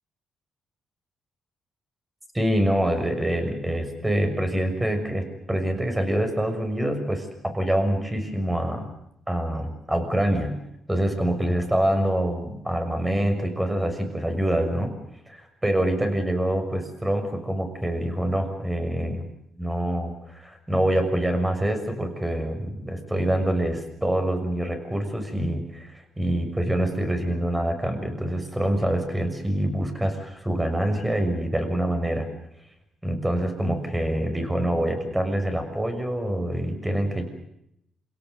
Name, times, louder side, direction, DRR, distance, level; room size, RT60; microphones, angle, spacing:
voice 1, 2.3-8.9 9.3-10.6 10.9-14.9 15.3-19.2 19.6-32.3 33.0-37.3, right 1 dB, 10° right, 6 dB, 6.4 m, -25 dB
28.0 x 17.5 x 8.2 m, 0.78 s
cardioid pair, 95°, 0 cm